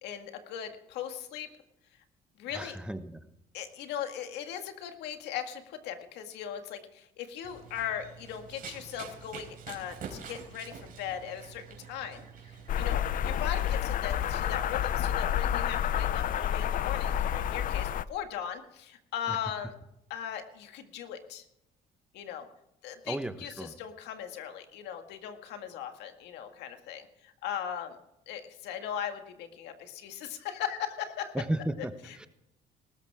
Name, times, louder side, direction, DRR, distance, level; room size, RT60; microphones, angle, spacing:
voice 1, 0.0-1.5 2.4-2.8 3.5-19.7 20.1-21.4 22.1-22.5 22.8-28.0 28.3-31.3 32.0-32.3, left 9 dB, 85° left, 6 dB, 2.0 m, -39 dB
voice 2, 2.5-3.2 19.3-19.4 23.0-23.7 31.3-31.9 32.2-32.3, right 1 dB, 5° right, 10 dB, 1.1 m, -34 dB
Run, 7.4-13.0, right 6 dB, 55° right, 4.3 m, -46 dB
sound 1, 12.7-18.0, left 10 dB, 55° left, 0.6 m, -29 dB
19.0 x 13.5 x 3.6 m, 0.83 s
cardioid pair, 110°, 17 cm